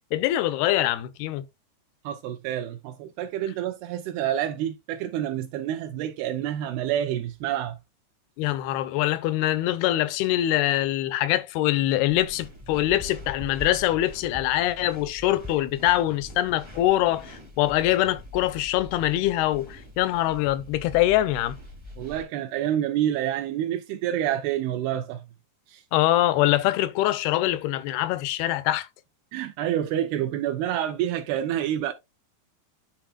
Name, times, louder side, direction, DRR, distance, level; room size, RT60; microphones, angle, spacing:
voice 1, 0.1-1.4 8.4-21.6 25.9-28.9, left 14 dB, 85° left, 2.6 m, -24 dB
voice 2, 2.0-7.8 22.0-25.2 25.7-25.8 29.3-31.9, right 11 dB, 80° right, 2.6 m, -28 dB
sound 1, 12.1-22.2, left 2 dB, 25° right, 0.6 m, -43 dB
10.5 x 4.2 x 2.3 m
omnidirectional pair, 4.5 m